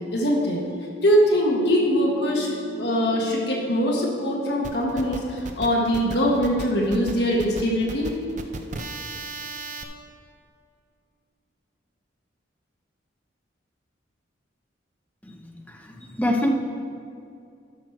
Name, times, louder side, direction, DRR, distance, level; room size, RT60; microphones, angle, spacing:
voice 1, 0.1-0.6 1.0-2.5 2.8-8.1, equal, 55° left, -2 dB, 1.3 m, -22 dB
sound 1, 1.8-7.0 7.3-7.4, equal, 85° left, 2.2 m, -41 dB
sound 2, 4.6-9.8, right 2 dB, 40° right, 0.6 m, -35 dB
voice 2, 16.1-16.5, left 1 dB, 10° left, 1 dB, 0.7 m, -23 dB
12.0 x 6.2 x 4.5 m, 2.4 s
head